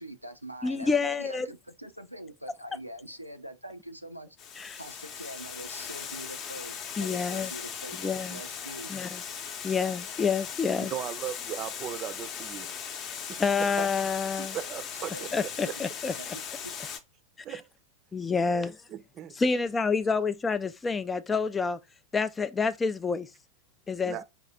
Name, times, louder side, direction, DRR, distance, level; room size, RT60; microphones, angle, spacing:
voice 1, 0.0-8.9 15.1-16.4, right 1 dB, 90° right, 0.5 m, -44 dB
voice 2, 0.6-1.5 4.6-4.8 7.0-7.5 8.0-8.4 8.9-9.2 9.6-10.9 13.4-14.6 15.3-16.4 18.1-18.8 19.4-21.8 22.1-23.3 23.9-24.2, left 5 dB, 15° left, 0.3 m, -28 dB
Water, 4.4-17.0, left 7 dB, 35° left, 0.8 m, -39 dB
voice 3, 10.8-12.7 13.3-13.9 14.4-15.7 17.4-17.7 18.4-19.4 24.0-24.2, right 11 dB, 30° right, 0.6 m, -38 dB
4.7 x 2.9 x 3.6 m
figure-of-eight pair, 90°, 0 cm